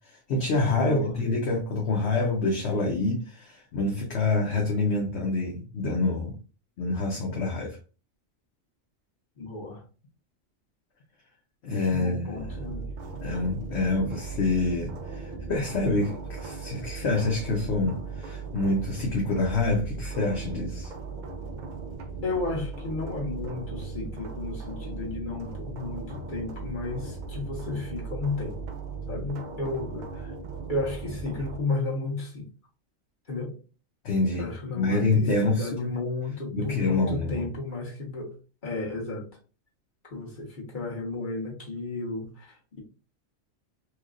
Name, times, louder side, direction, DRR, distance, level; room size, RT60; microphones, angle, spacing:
voice 1, 0.0-6.3 6.8-7.8 11.6-12.6 13.2-20.9 34.0-34.5 34.8-35.9 36.5-37.5, left 3 dB, 60° left, 1.0 m, -27 dB
voice 2, 0.6-1.2 9.4-9.8 11.9-12.9 22.2-28.6 29.1-30.3 30.7-32.5 33.3-33.6 34.4-38.4 38.6-39.3 40.1-42.8, left 3 dB, 40° left, 1.4 m, -33 dB
sound 1, 12.3-31.6, right 4 dB, 85° right, 0.4 m, -37 dB
4.5 x 2.4 x 2.4 m
omnidirectional pair, 1.4 m